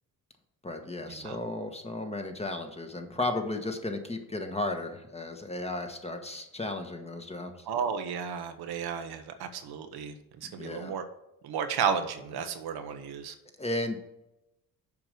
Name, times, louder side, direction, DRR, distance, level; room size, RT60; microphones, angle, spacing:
voice 1, 0.6-7.5 10.4-10.9 13.6-14.0, left 2 dB, 15° left, 5 dB, 1.3 m, -34 dB
voice 2, 7.7-11.0 11.4-13.3, right 7 dB, 85° right, 7 dB, 1.1 m, -33 dB
7.1 x 4.9 x 6.6 m, 0.91 s
cardioid pair, 90°, 37 cm